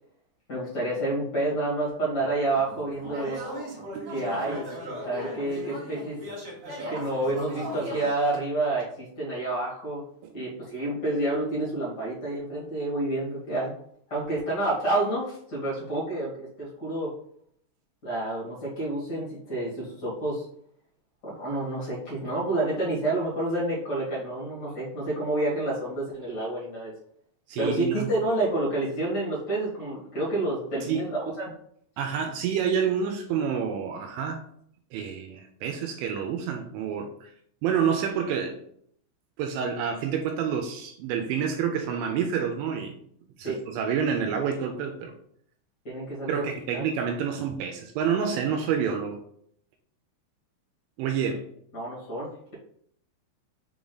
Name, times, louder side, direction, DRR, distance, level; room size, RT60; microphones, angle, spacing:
voice 1, 0.5-3.4 4.1-4.6 5.0-6.2 6.9-10.0 10.3-13.7 14.1-17.1 18.0-20.4 21.2-26.9 27.6-31.5 43.4-43.6 45.8-46.8 51.7-52.5, right 2 dB, 85° left, -5 dB, 0.9 m, -29 dB
sound 1, 2.4-8.1, equal, 45° right, 1.9 m, -37 dB
voice 2, 27.5-28.1 30.8-31.0 32.0-34.4 34.9-37.3 37.6-38.5 39.4-43.0 43.4-45.1 46.3-49.2 51.0-51.4, right 7 dB, 85° right, 4 dB, 2.8 m, -28 dB
6.9 x 3.7 x 3.9 m, 0.66 s
omnidirectional pair, 5.7 m